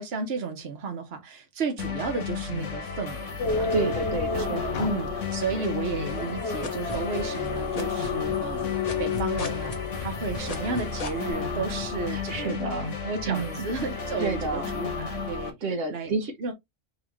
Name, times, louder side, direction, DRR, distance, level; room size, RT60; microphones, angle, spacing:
voice 1, 0.0-3.7 4.4-9.7 10.0-12.6 13.0-15.5 15.9-16.1 16.4-16.5, right 4 dB, 60° right, 1.2 m, -33 dB
sound 1, 1.8-15.5, left 5 dB, 80° left, 1.4 m, -33 dB
sound 2, 3.4-12.5, left 5 dB, 60° left, 0.8 m, -32 dB
voice 2, 3.7-4.6 12.1-13.0 13.3-13.7 14.2-14.7 15.6-16.3, right 3 dB, 85° right, 1.3 m, -30 dB
sound 3, 6.1-7.5 7.7-11.3, left 1 dB, 35° left, 0.9 m, -35 dB
3.7 x 3.1 x 3.0 m
omnidirectional pair, 1.3 m